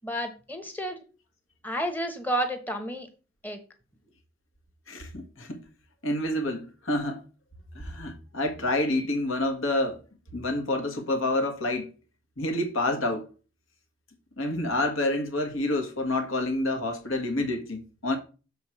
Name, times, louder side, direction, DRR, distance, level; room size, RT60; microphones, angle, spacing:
voice 1, 0.0-1.0 1.6-3.1 3.4-3.6, right 1 dB, 10° left, 1.0 m, -31 dB
voice 2, 4.9-5.6 6.0-7.2 7.8-10.0 10.3-11.9 12.4-13.3 14.4-18.2, left 1 dB, 80° left, 1.7 m, -28 dB
7.2 x 3.9 x 6.1 m
head